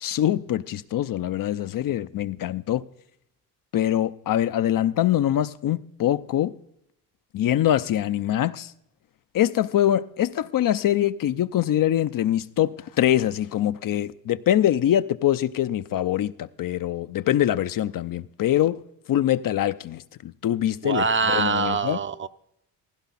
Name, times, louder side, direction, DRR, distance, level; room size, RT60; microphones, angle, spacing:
voice 1, 0.0-2.8 3.7-6.5 7.3-8.7 9.3-18.8 19.1-22.0, left 12 dB, 60° left, 0.7 m, -24 dB
voice 2, 20.8-22.3, right 5 dB, 30° right, 0.8 m, -24 dB
16.0 x 15.5 x 4.2 m
supercardioid pair, 55°, 38 cm